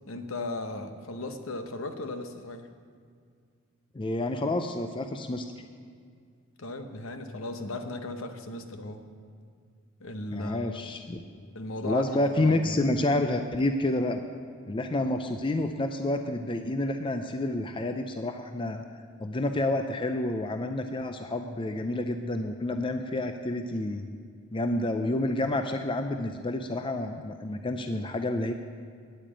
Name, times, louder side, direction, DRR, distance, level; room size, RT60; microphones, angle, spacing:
voice 1, 0.1-2.7 6.6-9.1 10.0-10.7 11.5-12.8, left 2 dB, 65° left, 7 dB, 0.9 m, -36 dB
voice 2, 3.9-5.5 10.3-11.3 11.8-14.2 14.7-18.8 19.2-24.1 24.5-28.5, left 2 dB, 25° left, 6 dB, 0.4 m, -29 dB
9.3 x 8.7 x 8.8 m, 2.1 s
head